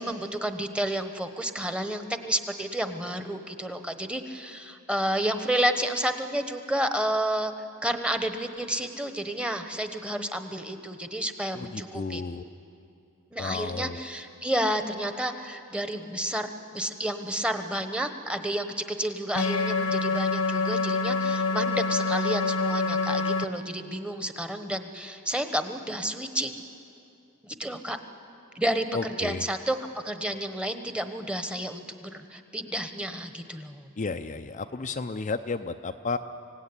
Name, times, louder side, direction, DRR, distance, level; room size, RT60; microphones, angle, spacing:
voice 1, 0.0-7.5 7.8-12.2 13.3-26.6 27.4-28.0 28.5-28.9 29.2-29.8 30.0-33.9, right 1 dB, 5° right, 8 dB, 1.1 m, -30 dB
voice 2, 11.5-12.4 13.4-14.0 28.9-29.5 34.0-36.2, left 4 dB, 35° left, 6 dB, 0.5 m, -32 dB
sound 1, 19.3-23.4, left 3 dB, 85° left, 1.2 m, -26 dB
25.0 x 17.0 x 9.8 m, 2.6 s
head